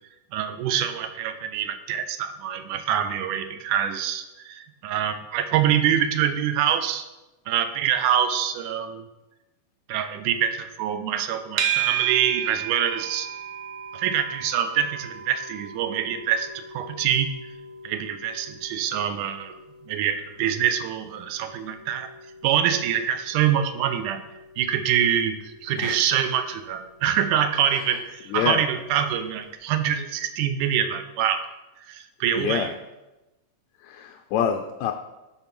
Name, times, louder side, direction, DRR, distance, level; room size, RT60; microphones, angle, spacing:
voice 1, 0.3-7.1 7.5-9.0 9.9-13.3 13.9-17.3 17.8-19.6 19.8-22.1 22.4-24.2 24.6-31.4 31.9-32.7, right 9 dB, 85° right, 9 dB, 2.2 m, -25 dB
sound 1, 11.6-28.8, right 9 dB, 70° right, 1.4 m, -36 dB
voice 2, 28.3-28.7 32.4-32.7 33.8-34.9, left 8 dB, 80° left, 4 dB, 1.7 m, -26 dB
11.5 x 4.0 x 5.9 m, 1.0 s
omnidirectional pair, 3.7 m